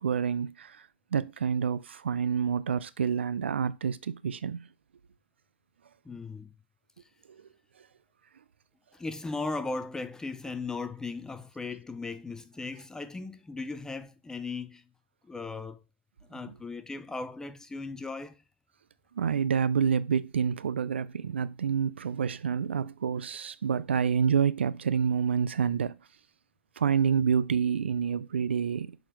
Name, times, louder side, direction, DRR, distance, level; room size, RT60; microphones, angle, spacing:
voice 1, 0.0-4.7 7.3-7.4 16.4-16.5 19.2-26.0 26.8-29.0, right 7 dB, 85° right, 0.4 m, -28 dB
voice 2, 6.0-6.5 8.9-14.8 15.3-15.8 16.3-18.4, left 3 dB, 10° left, 0.5 m, -37 dB
6.8 x 4.1 x 4.5 m
hypercardioid pair, 105°, 6 cm